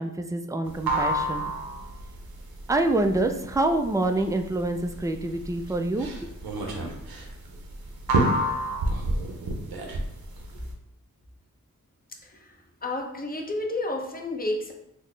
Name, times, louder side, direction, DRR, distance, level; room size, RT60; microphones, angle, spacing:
voice 1, 0.0-1.5 2.7-6.1, right 2 dB, 10° right, 5 dB, 0.3 m, -26 dB
sound 1, 0.7-10.7, right 1 dB, 90° right, 0.6 m, -28 dB
voice 2, 12.2-12.5 12.8-14.7, left 2 dB, 25° left, 2 dB, 0.7 m, -31 dB
3.9 x 2.1 x 3.2 m, 0.79 s
cardioid pair, 40°, 36 cm